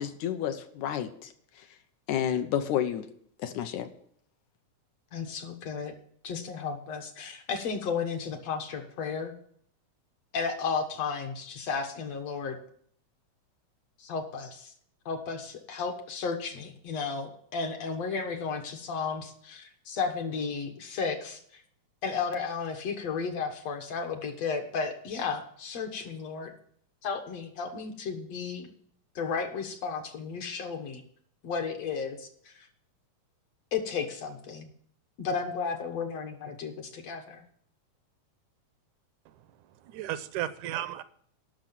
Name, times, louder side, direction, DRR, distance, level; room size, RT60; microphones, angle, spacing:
voice 1, 0.0-1.7 2.1-3.1 3.4-3.9, left 10 dB, 75° left, 8 dB, 2.2 m, -30 dB
voice 2, 5.1-5.9 6.2-9.3 10.3-12.6 14.0-14.7 15.1-21.6 22.0-26.5 27.0-28.7 29.2-31.0 31.4-32.7 33.7-34.7 35.2-37.4, left 5 dB, 60° left, 5 dB, 2.2 m, -33 dB
voice 3, 39.3-41.0, right 12 dB, 80° right, 14 dB, 2.0 m, -35 dB
12.0 x 6.3 x 7.5 m, 0.63 s
omnidirectional pair, 3.5 m